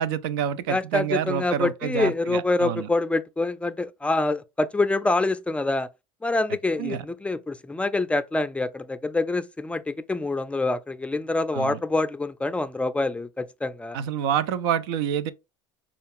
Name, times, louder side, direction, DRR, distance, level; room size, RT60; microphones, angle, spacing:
voice 1, 0.0-2.9 6.8-7.0 11.5-11.8 13.9-15.3, right 9 dB, 85° right, 0.4 m, -27 dB
voice 2, 0.7-5.9 6.2-14.0, left 2 dB, 10° left, 0.3 m, -26 dB
5.2 x 2.4 x 3.5 m
supercardioid pair, 100°, 12 cm